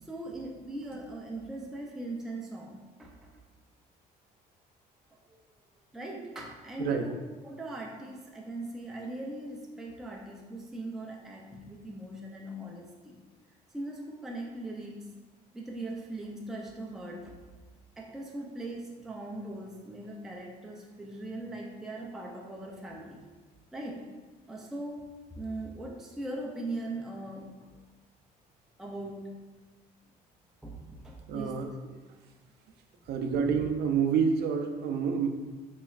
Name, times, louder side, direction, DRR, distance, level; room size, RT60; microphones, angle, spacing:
voice 1, 0.0-3.3 5.3-5.4 5.9-7.1 7.4-13.1 13.7-15.2 15.5-17.4 18.0-23.2 23.7-24.0 24.5-25.0 25.4-27.8 28.8-29.4 30.6-31.6, right 2 dB, 5° right, -1 dB, 0.4 m, -40 dB
voice 2, 31.3-32.0 33.1-35.3, right 6 dB, 70° right, 5 dB, 0.5 m, -28 dB
4.1 x 3.0 x 2.3 m, 1.3 s
cardioid pair, 110°, 17 cm